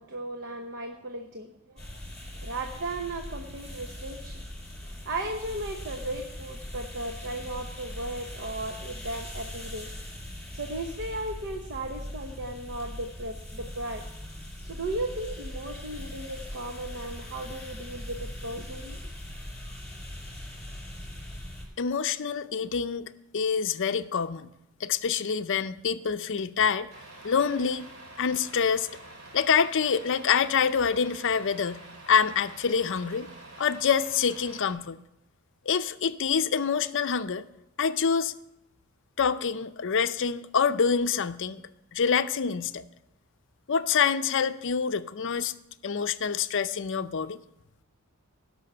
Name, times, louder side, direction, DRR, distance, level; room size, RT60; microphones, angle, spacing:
voice 1, 0.0-4.4 4.8-9.9 10.5-14.0 14.6-19.0, right 1 dB, 55° right, 4 dB, 1.0 m, -36 dB
sound 1, 1.8-21.7, left 1 dB, 5° left, 5.0 m, -41 dB
voice 2, 21.8-24.5 24.8-26.9 27.2-27.9 28.2-28.9 29.3-33.3 33.6-35.0 35.7-37.4 37.8-38.3 39.2-41.6 41.9-42.8 43.7-45.5 45.8-47.4, left 6 dB, 55° left, 12 dB, 0.6 m, -26 dB
Truck, 26.9-34.7, right 2 dB, 75° right, 2.9 m, -47 dB
16.0 x 6.2 x 6.8 m, 0.86 s
head